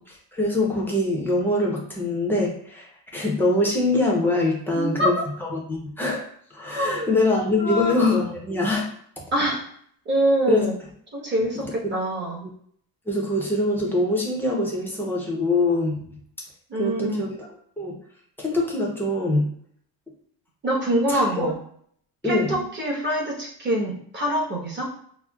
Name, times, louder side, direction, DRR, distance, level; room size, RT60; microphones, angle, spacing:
voice 1, 0.3-5.1 5.4-6.2 6.5-8.9 10.5-10.7 13.1-16.2 16.7-17.5 17.8-17.9 18.4-19.5 21.1-21.5 22.2-22.5, left 2 dB, 5° left, -3 dB, 0.7 m, -23 dB
voice 2, 4.7-5.2 6.7-7.1 7.6-7.9 9.3-9.6 10.0-10.7 11.1-12.4 16.7-17.2 20.6-21.6 22.2-24.9, right 1 dB, 25° right, -3 dB, 1.1 m, -24 dB
5.9 x 2.1 x 2.3 m, 0.62 s
cardioid pair, 155°, 41 cm